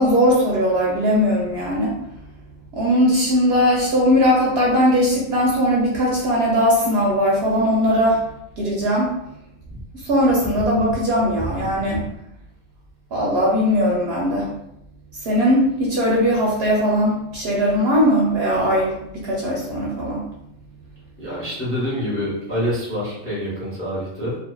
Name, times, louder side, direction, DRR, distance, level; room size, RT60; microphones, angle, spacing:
voice 1, 0.0-2.0 2.7-8.2 8.6-9.1 10.0-12.0 13.1-14.5 15.2-19.0 19.2-20.2, equal, 60° right, -4 dB, 0.7 m, -19 dB
voice 2, 21.2-24.4, equal, 15° left, -7 dB, 0.5 m, -26 dB
2.5 x 2.2 x 2.2 m, 0.79 s
omnidirectional pair, 1.3 m